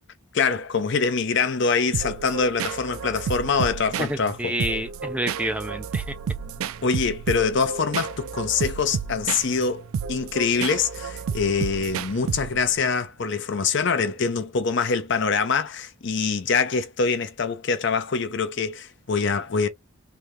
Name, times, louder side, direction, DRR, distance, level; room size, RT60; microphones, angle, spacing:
voice 1, 0.3-4.5 6.8-19.7, left 5 dB, 55° left, 0.6 m, -24 dB
sound 1, 1.9-12.8, right 6 dB, 70° right, 0.4 m, -31 dB
voice 2, 4.0-6.1, right 1 dB, 5° right, 0.4 m, -29 dB
3.4 x 2.7 x 3.1 m
head